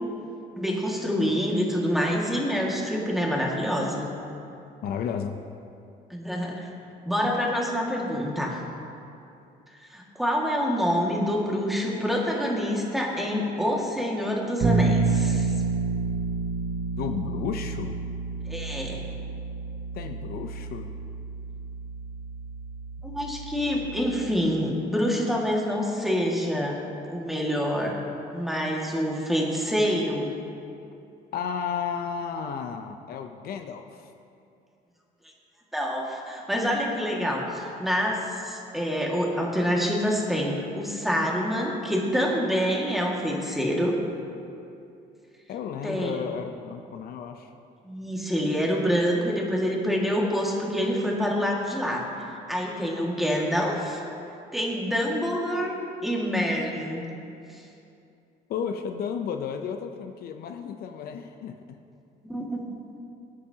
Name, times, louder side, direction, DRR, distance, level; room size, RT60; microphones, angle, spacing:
voice 1, 0.6-4.1 6.1-6.7 7.0-8.6 9.8-15.5 18.5-19.0 23.0-26.8 27.1-28.0 28.3-30.3 35.7-44.0 45.8-46.2 47.8-52.1 52.5-54.0 54.5-55.7 56.0-57.0 57.5-57.6 62.3-62.6, equal, ahead, -2 dB, 1.9 m, -26 dB
voice 2, 4.8-5.4 17.0-18.0 19.9-20.9 31.3-34.1 45.5-47.5 58.5-61.6, left 7 dB, 65° left, 5 dB, 0.6 m, -33 dB
Bass guitar, 14.6-24.4, right 4 dB, 50° right, 0.9 m, -29 dB
19.0 x 8.7 x 2.9 m, 2.6 s
cardioid pair, 110°, 17 cm